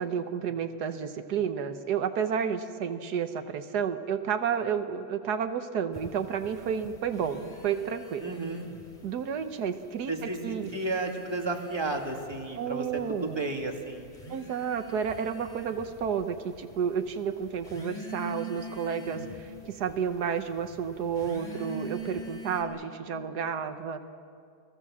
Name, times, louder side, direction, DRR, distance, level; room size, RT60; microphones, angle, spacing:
voice 1, 0.0-8.3 9.0-10.7 12.6-13.3 14.3-24.0, right 7 dB, 85° right, 8 dB, 1.6 m, -31 dB
sound 1, 5.9-9.0 9.3-10.1 10.5-22.6, right 1 dB, 25° left, 3.0 m, -44 dB
voice 2, 8.2-8.7 10.1-14.1, right 2 dB, 15° right, 2 dB, 2.1 m, -33 dB
29.5 x 18.0 x 7.4 m, 2.3 s
omnidirectional pair, 1.7 m